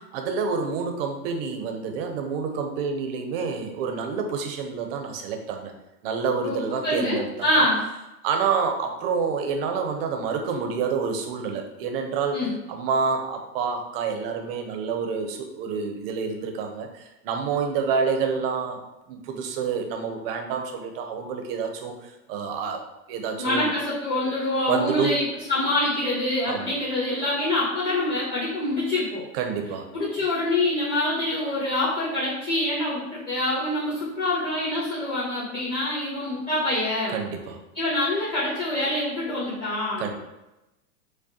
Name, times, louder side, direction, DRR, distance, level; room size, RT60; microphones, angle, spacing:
voice 1, 0.1-5.7 6.0-7.3 7.6-7.7 8.2-12.4 12.7-18.8 19.1-22.8 23.1-23.7 24.7-25.2 26.5-26.7 29.3-29.9 37.1-37.6 40.0-40.1, right 5 dB, 40° right, 4 dB, 0.6 m, -28 dB
voice 2, 6.8-7.8 12.3-12.5 23.4-29.2 29.9-37.2 37.7-40.0, left 1 dB, 20° left, -10 dB, 1.2 m, -25 dB
4.9 x 2.1 x 2.7 m, 0.98 s
hypercardioid pair, 130°, 46 cm